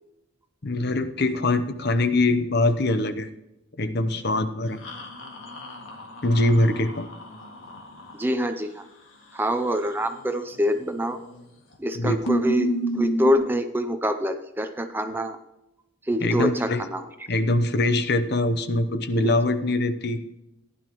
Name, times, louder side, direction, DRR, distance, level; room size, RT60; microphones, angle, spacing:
voice 1, 0.6-3.3 3.8-4.8 6.2-7.1 11.9-12.2 16.2-16.8 17.3-20.4, left 2 dB, 50° left, 11 dB, 0.8 m, -23 dB
sound 1, 4.8-8.2 10.9-11.4 11.7-11.8 12.3-13.3, right 1 dB, 70° left, 2.0 m, -30 dB
voice 2, 8.1-8.9 9.3-11.2 11.8-15.4 16.1-17.0 19.2-19.3, equal, 10° right, 8 dB, 0.5 m, -25 dB
15.5 x 11.0 x 3.0 m, 0.91 s
head